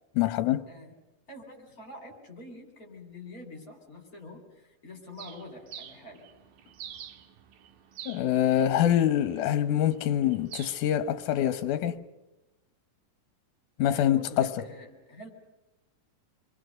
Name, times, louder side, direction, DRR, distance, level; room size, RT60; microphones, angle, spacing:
voice 1, 0.2-0.7 8.1-12.0 13.8-14.5, left 11 dB, 70° left, 2.4 m, -25 dB
voice 2, 1.3-6.3 13.9-15.3, left 1 dB, 25° left, 4.2 m, -46 dB
Bird, 5.2-11.8, right 10 dB, 80° right, 2.9 m, -48 dB
28.5 x 23.0 x 6.5 m
omnidirectional pair, 3.9 m